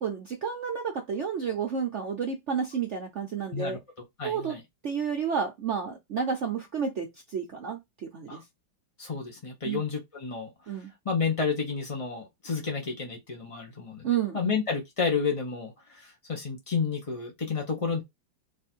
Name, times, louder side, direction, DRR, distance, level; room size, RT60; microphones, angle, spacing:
voice 1, 0.0-3.8 4.2-4.5 4.8-8.4 9.6-9.8 10.7-10.9 14.0-14.5, right 7 dB, 65° right, 0.7 m, -31 dB
voice 2, 4.2-4.6 8.3-8.4 9.0-10.7 11.0-18.0, left 5 dB, 50° left, 0.3 m, -31 dB
4.6 x 2.5 x 4.4 m
omnidirectional pair, 2.2 m